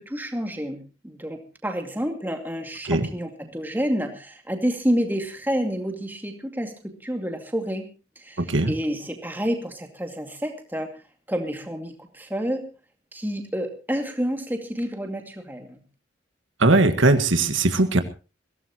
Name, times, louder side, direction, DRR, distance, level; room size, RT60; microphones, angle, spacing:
voice 1, 0.0-6.7 7.0-7.9 8.2-10.9 11.3-12.7 13.1-15.8, equal, 10° right, 3 dB, 2.3 m, -29 dB
voice 2, 16.6-18.0, right 2 dB, 80° right, 8 dB, 1.6 m, -19 dB
22.0 x 17.0 x 3.0 m, 0.33 s
head